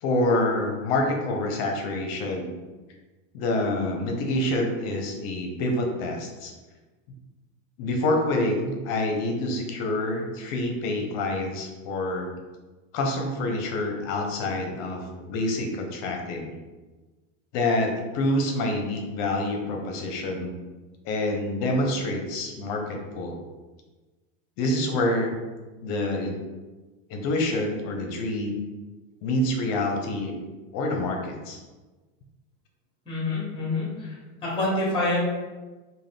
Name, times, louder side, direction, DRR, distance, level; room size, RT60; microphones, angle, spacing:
voice 1, 0.0-2.5 3.3-6.5 7.8-12.3 12.9-16.6 17.5-20.5 21.0-23.4 24.6-25.4 25.8-26.4 27.1-28.6 29.2-30.4 30.7-31.6, left 1 dB, 55° left, 2 dB, 0.7 m, -27 dB
voice 2, 33.0-34.2 34.4-35.2, left 2 dB, 15° left, -6 dB, 1.1 m, -27 dB
2.4 x 2.3 x 3.4 m, 1.2 s
supercardioid pair, 125°, 38 cm